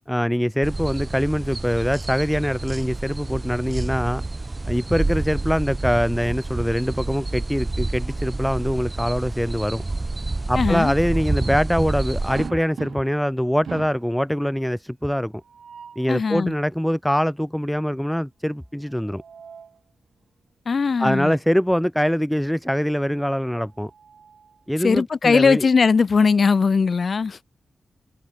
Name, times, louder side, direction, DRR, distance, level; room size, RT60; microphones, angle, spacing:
voice 1, 0.1-4.2 4.7-9.8 10.5-15.3 16.0-19.2 21.0-23.9 24.7-25.7, equal, 5° left, 3.6 m, -23 dB
sound 1, 0.6-12.5, right 2 dB, 30° right, 1.2 m, -28 dB
voice 2, 10.6-10.9 16.1-16.5 20.7-21.4 24.8-27.4, left 5 dB, 60° left, 3.6 m, -19 dB
sound 2, 12.3-13.3 13.6-14.1 15.4-16.1 18.8-19.8 21.2-21.4 21.8-21.9 23.4-24.7, right 6 dB, 75° right, 3.5 m, -40 dB
cardioid pair, 60°, 0 cm